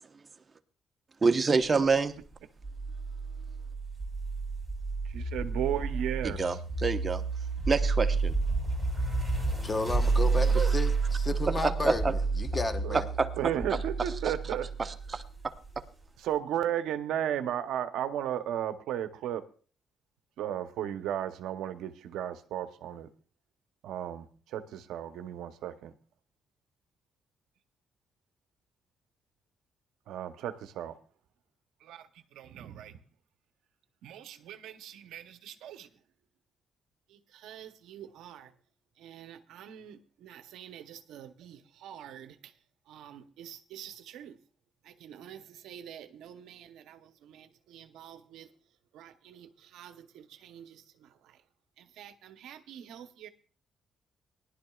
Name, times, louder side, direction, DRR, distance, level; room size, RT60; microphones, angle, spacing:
voice 1, 1.2-2.2 6.2-7.2 7.7-8.3 10.5-10.7 11.6-12.1 13.2-13.3 14.2-14.3 14.8-15.2, right 4 dB, 30° right, 1.0 m, -27 dB
sound 1, 2.6-15.8, right 4 dB, ahead, 2.9 m, -30 dB
voice 2, 5.1-6.6 12.8-13.0 13.4-14.7 16.2-19.4 20.4-23.1 23.8-25.9 30.1-31.0 31.8-32.1 32.3-32.9 34.0-35.9 37.1-38.5 39.0-42.4 42.9-44.4 44.9-48.5 48.9-51.1 51.8-53.3, right 10 dB, 85° right, 0.8 m, -37 dB
voice 3, 9.6-13.1, left 2 dB, 25° left, 1.0 m, -32 dB
19.0 x 11.5 x 2.4 m
cardioid pair, 90°, 0 cm